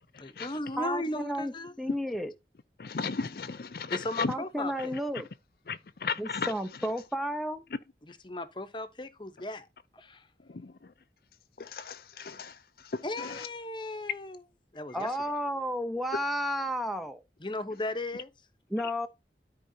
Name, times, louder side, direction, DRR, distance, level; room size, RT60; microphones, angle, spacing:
voice 1, 0.1-1.7 3.9-4.9 8.0-9.7 9.9-10.3 13.0-14.4 14.7-15.1 17.4-18.3, left 2 dB, 25° left, 0.9 m, -36 dB
voice 2, 0.8-1.5 1.8-2.3 4.3-5.3 6.2-7.6 14.9-17.2 18.7-19.1, equal, ahead, 0.6 m, -32 dB
voice 3, 2.8-4.3 5.7-6.5 10.5-10.7 11.6-12.6 12.8-13.5, left 5 dB, 55° left, 0.5 m, -35 dB
13.0 x 4.7 x 2.7 m
head